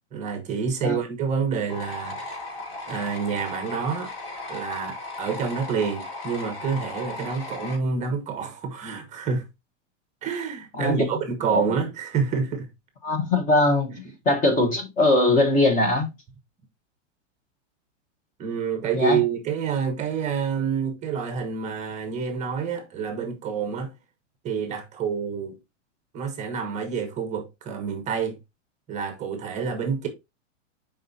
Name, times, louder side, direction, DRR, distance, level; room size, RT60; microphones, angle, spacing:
voice 1, 0.1-2.5 2.9-4.1 4.5-9.4 10.2-12.7 18.4-23.9 24.4-25.6 26.1-28.4 28.9-30.1, right 6 dB, 20° right, 1.1 m, -28 dB
sound 1, 1.7-7.8, left 2 dB, 50° left, 4.3 m, -36 dB
voice 2, 13.0-16.1 18.9-19.2, left 2 dB, 20° left, 1.3 m, -21 dB
7.5 x 5.3 x 2.8 m
supercardioid pair, 155°, 37 cm